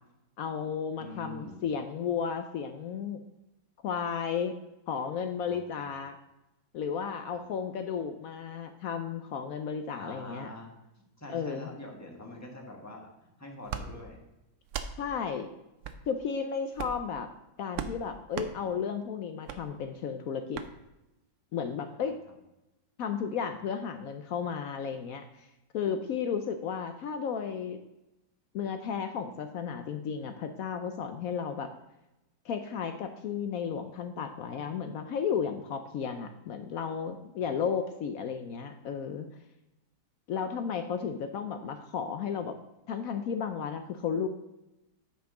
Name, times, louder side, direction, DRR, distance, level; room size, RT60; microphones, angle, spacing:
voice 1, 0.4-3.2 3.8-4.6 4.9-6.1 6.7-10.5 11.3-11.7 15.0-15.5 16.1-17.3 17.6-20.6 21.5-22.2 23.0-25.5 25.7-27.8 28.5-31.7 32.4-39.3 40.3-42.6 42.9-44.3, left 7 dB, 70° left, 7 dB, 0.9 m, -33 dB
voice 2, 1.0-1.6 5.4-5.8 7.3-7.4 9.9-14.2 21.9-22.1 37.4-37.5, left 1 dB, 10° left, 0 dB, 1.1 m, -45 dB
sound 1, 13.7-13.9 14.7-14.9 15.8-16.0 16.7-17.0 17.7-18.0 18.3-18.5 19.5-19.6 20.5-20.7, right 8 dB, 70° right, 0.8 m, -36 dB
8.9 x 5.5 x 3.7 m, 0.93 s
omnidirectional pair, 1.8 m